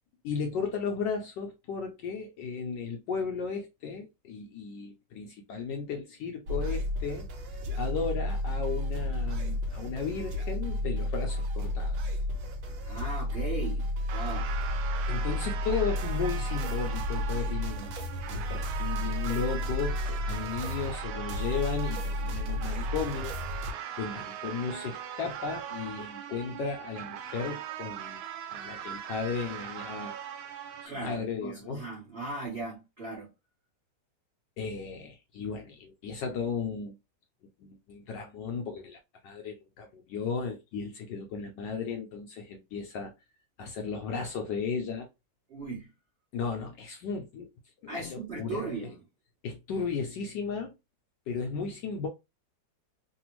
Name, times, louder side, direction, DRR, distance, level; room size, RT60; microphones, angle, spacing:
voice 1, 0.2-12.2 15.1-17.9 18.3-23.7 24.0-28.2 28.5-30.1 30.8-31.8 34.6-37.0 37.6-39.0 39.2-43.1 43.6-45.1 46.3-47.5 47.8-48.7 49.4-50.7 51.3-52.1, left 5 dB, 75° left, 1.0 m, -35 dB
sound 1, 6.5-23.7, left 1 dB, 70° right, 1.4 m, -32 dB
voice 2, 12.8-14.5 30.8-33.3 45.5-45.9 47.9-49.0, right 3 dB, 45° right, 0.8 m, -38 dB
sound 2, 14.1-30.9, right 10 dB, 85° right, 1.5 m, -40 dB
3.3 x 2.3 x 3.0 m
omnidirectional pair, 2.3 m